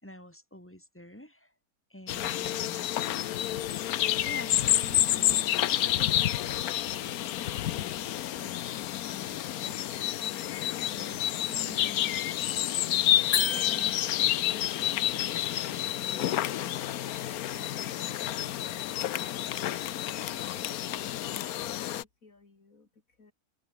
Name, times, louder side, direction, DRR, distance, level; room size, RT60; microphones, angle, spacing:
voice 1, 0.0-1.5 1.9-2.9 4.2-8.8 10.8-12.3, equal, 10° left, 6.2 m, -49 dB
sound 1, 2.1-22.0, left 12 dB, 80° left, 1.2 m, -29 dB
sound 2, 13.3-14.5, left 8 dB, 45° left, 0.9 m, -31 dB
voice 2, 20.9-23.3, left 3 dB, 65° left, 3.5 m, -57 dB
omnidirectional pair, 1.6 m